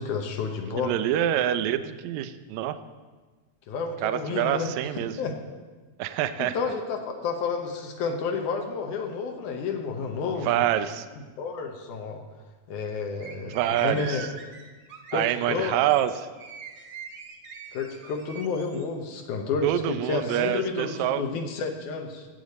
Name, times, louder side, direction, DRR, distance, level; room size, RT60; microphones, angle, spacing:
voice 1, 0.0-0.9 3.7-4.7 5.2-5.3 6.4-10.6 11.4-12.2 12.7-14.2 15.1-15.7 17.7-22.3, left 5 dB, 75° left, 3 dB, 2.3 m, -30 dB
voice 2, 0.8-2.8 4.0-5.1 6.0-6.6 10.4-11.1 13.4-14.3 15.1-16.3 19.6-21.2, right 12 dB, 80° right, 12 dB, 1.8 m, -26 dB
sound 1, 13.2-18.8, right 5 dB, 55° right, 1.6 m, -44 dB
15.5 x 8.3 x 4.1 m, 1.3 s
omnidirectional pair, 3.6 m